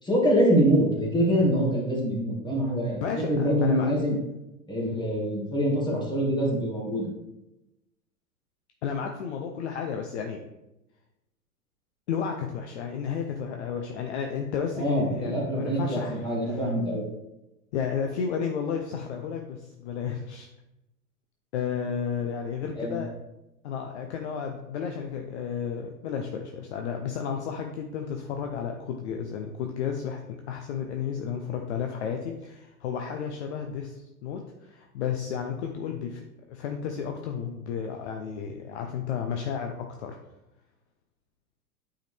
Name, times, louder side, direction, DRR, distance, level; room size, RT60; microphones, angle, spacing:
voice 1, 0.0-3.0 3.3-4.1 4.7-7.1 14.8-17.0 22.8-23.0, equal, 10° left, -3 dB, 2.1 m, -24 dB
voice 2, 3.0-4.0 8.8-10.4 12.1-16.6 17.7-20.5 21.5-23.1 23.6-36.2 36.5-40.2, left 7 dB, 45° left, 3 dB, 0.8 m, -32 dB
8.8 x 4.9 x 3.4 m, 0.92 s
figure-of-eight pair, 95°, 47 cm